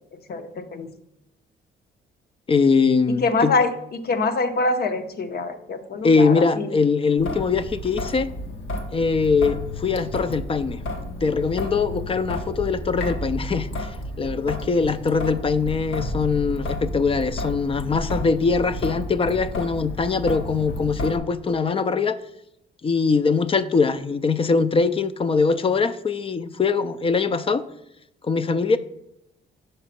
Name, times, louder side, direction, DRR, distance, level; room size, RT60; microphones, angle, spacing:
voice 1, 0.3-0.9 3.2-3.7 4.0-6.7, left 3 dB, 55° left, 9 dB, 0.8 m, -24 dB
voice 2, 2.5-3.6 6.0-8.3 8.9-10.8 11.2-22.2 22.8-27.6 28.2-28.8, left 4 dB, 30° left, 14 dB, 0.4 m, -22 dB
Traffic noise roadway noise / Drip / Trickle dribble, 7.2-21.2, left 1 dB, 75° left, 1.1 m, -32 dB
5.3 x 5.0 x 5.7 m, 0.81 s
cardioid pair, 90°, 20 cm